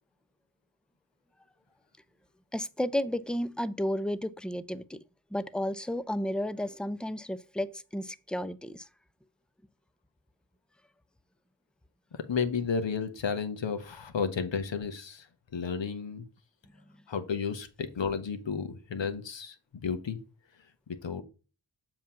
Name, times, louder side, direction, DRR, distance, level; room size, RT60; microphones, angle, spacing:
voice 1, 2.5-5.0 5.3-8.9, equal, ahead, 0.4 m, -32 dB
voice 2, 12.3-15.3 15.5-16.2 17.1-19.5 19.8-20.2 21.0-21.2, left 6 dB, 65° left, 1.1 m, -32 dB
7.2 x 2.9 x 5.6 m
cardioid pair, 40°, 48 cm